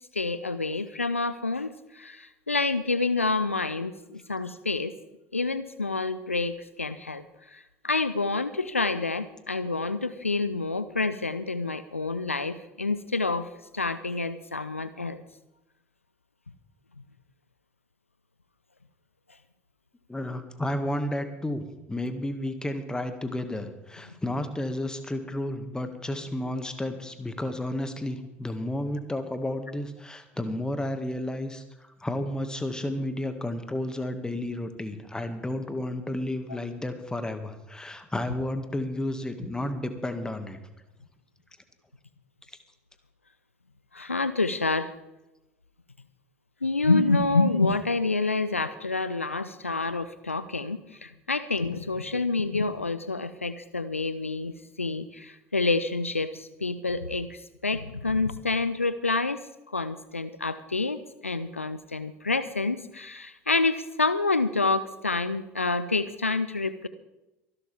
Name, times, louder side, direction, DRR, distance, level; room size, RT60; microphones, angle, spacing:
voice 1, 0.1-4.9 5.3-15.2 43.9-44.9 46.6-54.5 54.8-66.9, left 3 dB, 85° left, 14 dB, 0.5 m, -28 dB
voice 2, 20.1-40.6, left 1 dB, 10° left, 8 dB, 2.0 m, -32 dB
24.5 x 12.0 x 3.6 m, 0.95 s
figure-of-eight pair, 60°, 7 cm